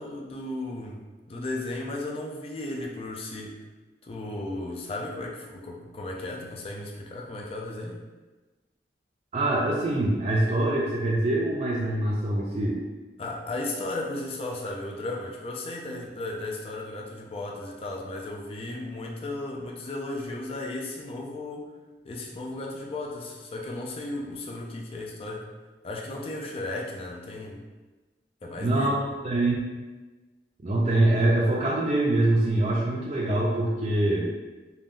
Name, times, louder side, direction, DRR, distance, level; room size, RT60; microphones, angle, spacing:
voice 1, 0.0-3.6 4.0-8.0 13.2-21.7 22.0-25.5 25.8-27.6 28.4-28.9, left 2 dB, 35° left, -1 dB, 0.3 m, -35 dB
voice 2, 9.3-12.8 28.6-29.6 30.6-34.3, right 1 dB, 35° right, -5 dB, 0.4 m, -24 dB
2.5 x 2.2 x 3.5 m, 1.2 s
head